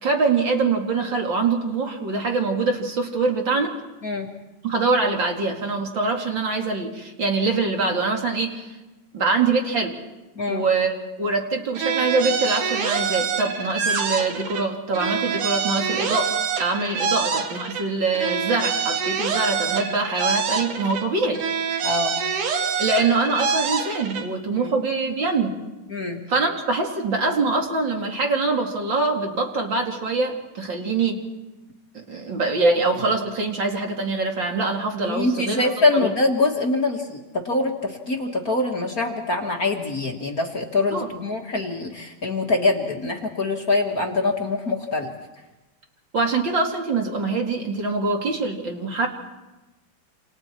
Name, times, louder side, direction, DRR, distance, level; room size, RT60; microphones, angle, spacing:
voice 1, 0.0-3.7 4.6-8.6 9.1-9.9 10.5-21.4 22.8-25.6 26.3-31.2 31.9-36.1 40.9-41.1 46.1-49.1, right 3 dB, 40° right, 2 dB, 2.7 m, -24 dB
voice 2, 10.3-10.7 16.8-17.0 21.8-22.2 24.5-24.7 25.9-26.2 35.0-45.1, left 2 dB, 35° left, 2 dB, 1.5 m, -24 dB
sound 1, 11.7-14.7 14.9-17.9 18.1-21.1 21.3-24.3, right 6 dB, 70° right, 3.2 m, -26 dB
28.0 x 28.0 x 4.5 m, 1.1 s
omnidirectional pair, 3.7 m